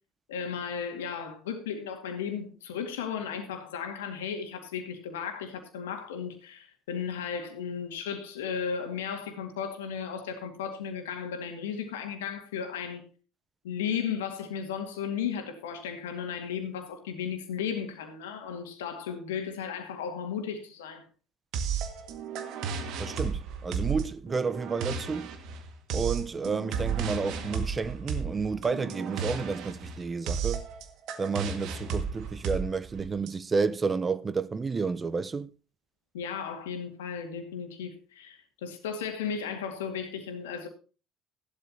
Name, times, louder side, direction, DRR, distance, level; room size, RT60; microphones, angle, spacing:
voice 1, 0.3-13.0 13.6-21.0 36.1-40.7, left 7 dB, 80° left, 2.1 m, -35 dB
sound 1, 21.5-33.3, right 6 dB, 65° right, 1.7 m, -33 dB
voice 2, 23.0-25.3 25.9-30.6 31.2-35.5, right 4 dB, 30° right, 0.7 m, -31 dB
15.0 x 12.0 x 2.8 m
hypercardioid pair, 60°, 0 cm